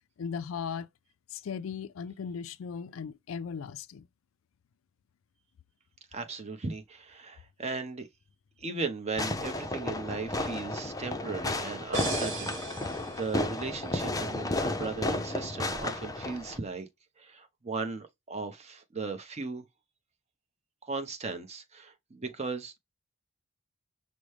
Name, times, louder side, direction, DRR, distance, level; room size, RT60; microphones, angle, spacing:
voice 1, 0.2-0.9 1.3-4.1, left 6 dB, 80° left, 0.4 m, -37 dB
voice 2, 6.1-8.1 8.6-16.9 17.2-19.6 20.8-22.8, right 4 dB, 35° right, 0.8 m, -37 dB
Fireworks, 9.2-16.6, left 2 dB, 20° left, 0.5 m, -33 dB
sound 1, 11.9-13.7, right 3 dB, 65° right, 1.3 m, -38 dB
6.0 x 2.1 x 3.2 m
head